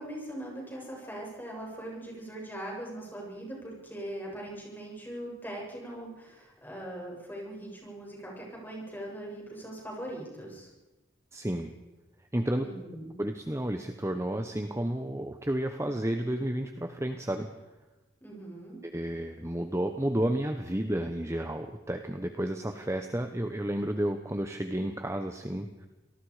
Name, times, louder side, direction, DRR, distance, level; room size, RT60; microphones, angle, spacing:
voice 1, 0.0-10.7 12.6-13.1 18.2-18.8, right 1 dB, 10° left, -2 dB, 7.4 m, -41 dB
voice 2, 11.3-11.7 12.3-12.7 13.2-17.5 18.9-25.9, right 1 dB, 15° right, 6 dB, 1.1 m, -31 dB
27.5 x 19.0 x 5.0 m, 1.1 s
head